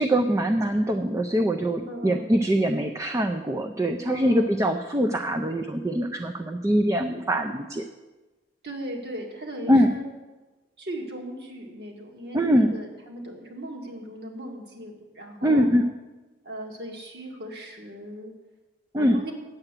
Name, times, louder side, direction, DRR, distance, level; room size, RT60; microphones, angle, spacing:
voice 1, 0.0-7.8 9.7-10.0 12.3-12.7 15.4-15.8 18.9-19.2, equal, 20° right, 5 dB, 0.4 m, -23 dB
voice 2, 1.9-2.3 4.1-4.6 8.6-10.0 10.8-15.7 16.4-18.3 19.0-19.3, right 1 dB, 65° right, 1 dB, 2.0 m, -37 dB
8.9 x 7.8 x 7.4 m, 1.2 s
head